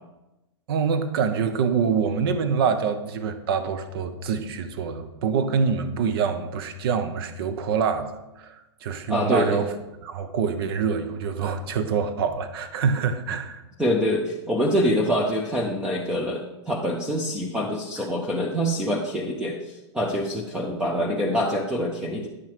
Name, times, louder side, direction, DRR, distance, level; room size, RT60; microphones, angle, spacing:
voice 1, 0.7-8.1 8.4-8.5 8.8-9.7 10.0-13.6, right 6 dB, 55° right, 10 dB, 0.9 m, -25 dB
voice 2, 9.1-9.6 13.8-22.3, equal, 5° right, 0 dB, 0.8 m, -25 dB
9.8 x 5.7 x 4.7 m, 1.0 s
hypercardioid pair, 130°, 15 cm